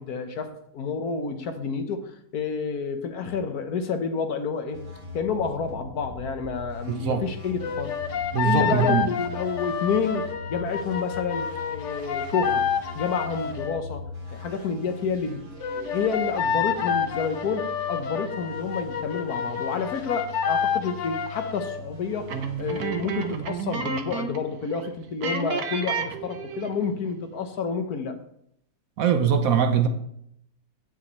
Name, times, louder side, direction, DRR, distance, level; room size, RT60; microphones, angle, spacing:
voice 1, 0.0-4.8 5.1-7.9 8.4-12.6 12.9-14.0 14.3-15.4 15.7-28.2, left 5 dB, 85° left, 7 dB, 1.6 m, -29 dB
sound 1, 4.7-24.3, left 3 dB, 45° right, 3.0 m, -41 dB
voice 2, 6.9-7.2 8.3-9.1 29.0-29.9, right 7 dB, 70° right, 7 dB, 1.2 m, -22 dB
sound 2, 7.6-13.8 15.6-21.8, left 7 dB, 60° left, 1.1 m, -29 dB
sound 3, 22.3-24.5 24.7-24.9 25.2-26.8, right 6 dB, 85° right, 1.5 m, -31 dB
16.5 x 6.4 x 3.1 m, 0.73 s
omnidirectional pair, 1.6 m